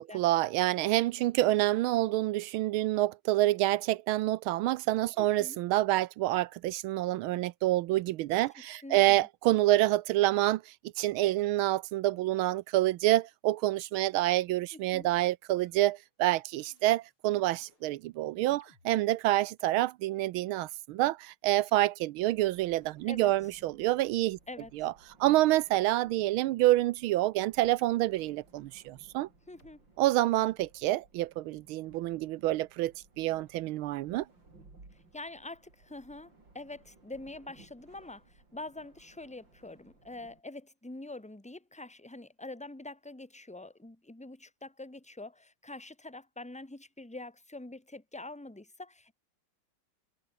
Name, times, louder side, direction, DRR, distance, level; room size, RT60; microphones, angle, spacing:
voice 1, 0.0-24.4 24.7-24.9 25.2-29.3 30.0-34.3, right 16 dB, 80° right, 1.4 m, -27 dB
voice 2, 5.2-5.6 8.8-9.3 14.7-15.1 23.1-23.3 24.5-24.9 29.5-29.8 34.9-49.1, left 2 dB, 5° left, 1.9 m, -45 dB
sound 1, 15.6-16.1 16.6-17.2 17.6-17.9 18.6-19.8 20.6-20.8 21.6-21.8 22.6-23.0 23.6-23.7 24.6-24.7 25.6-25.9 26.6-27.2 27.6-28.9 29.6-29.8 30.6-31.0, left 3 dB, 80° left, 7.3 m, -68 dB
sound 2, 22.3-40.4, right 3 dB, 60° right, 6.4 m, -61 dB
omnidirectional pair, 2.3 m